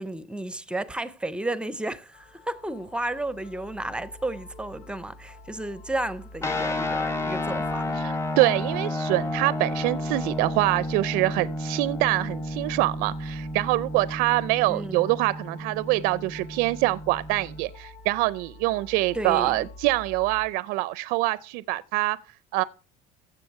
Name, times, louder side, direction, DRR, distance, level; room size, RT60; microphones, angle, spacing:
voice 1, 0.0-8.0 14.7-15.2 19.1-19.7, right 1 dB, 5° right, 0.5 m, -33 dB
sound 1, 2.1-20.4, left 2 dB, 65° left, 5.7 m, -47 dB
sound 2, 6.4-17.6, left 1 dB, 15° left, 0.9 m, -31 dB
voice 2, 7.9-22.2 22.5-22.6, right 19 dB, 70° right, 0.4 m, -25 dB
15.0 x 6.8 x 4.6 m
cardioid pair, 155°, 16 cm